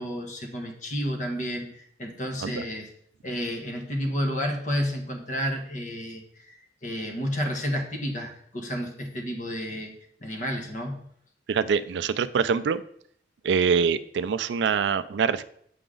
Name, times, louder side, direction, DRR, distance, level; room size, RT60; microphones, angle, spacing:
voice 1, 0.0-2.9 3.2-9.9 10.2-11.1, equal, 45° left, 3 dB, 1.2 m, -31 dB
voice 2, 11.5-12.8 13.4-15.4, right 6 dB, 70° right, 15 dB, 0.3 m, -24 dB
7.8 x 5.0 x 3.8 m, 0.66 s
head